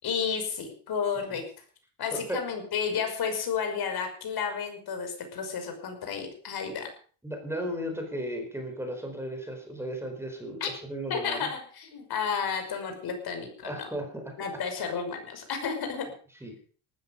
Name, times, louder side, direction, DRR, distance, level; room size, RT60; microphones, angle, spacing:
voice 1, 0.0-1.4 2.0-6.9 10.6-10.7 11.1-13.9 14.4-16.1, left 6 dB, 45° left, 5 dB, 5.8 m, -32 dB
voice 2, 2.1-2.4 7.2-11.5 13.6-14.3 16.4-16.5, equal, 5° right, 3 dB, 4.6 m, -35 dB
19.0 x 13.5 x 5.4 m, 0.43 s
cardioid pair, 165°, 49 cm